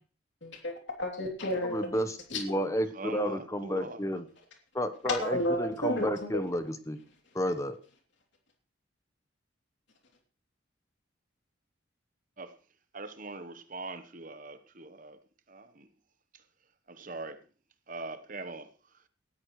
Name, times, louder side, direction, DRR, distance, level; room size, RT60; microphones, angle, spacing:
voice 1, 0.4-1.9 2.3-2.4 5.0-6.4, left 1 dB, 70° left, 3.0 m, -31 dB
voice 2, 1.6-4.2 4.7-7.0 7.3-7.8, equal, 15° left, 1.0 m, -31 dB
voice 3, 2.9-4.0 12.4-12.6 12.9-15.2 15.5-15.9 16.3-16.4 16.9-17.4 17.9-18.7, right 3 dB, 40° right, 1.0 m, -42 dB
18.5 x 13.5 x 3.2 m
head